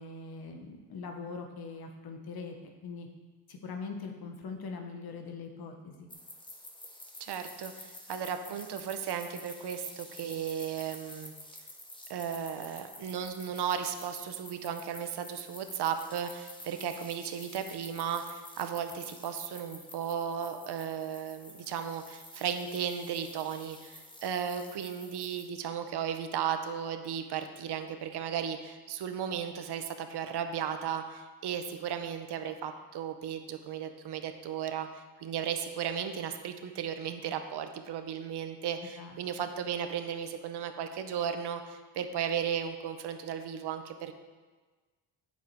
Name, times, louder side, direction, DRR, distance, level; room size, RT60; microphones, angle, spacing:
voice 1, 0.0-2.6 2.8-3.1 3.5-6.1 39.0-39.1, left 4 dB, 55° left, 4 dB, 1.3 m, -42 dB
sound 1, 6.1-25.4, left 1 dB, 10° left, 1.1 m, -49 dB
voice 2, 7.2-11.3 12.1-44.2, right 8 dB, 65° right, 7 dB, 0.9 m, -35 dB
9.0 x 7.3 x 4.7 m, 1.3 s
cardioid pair, 140°, 44 cm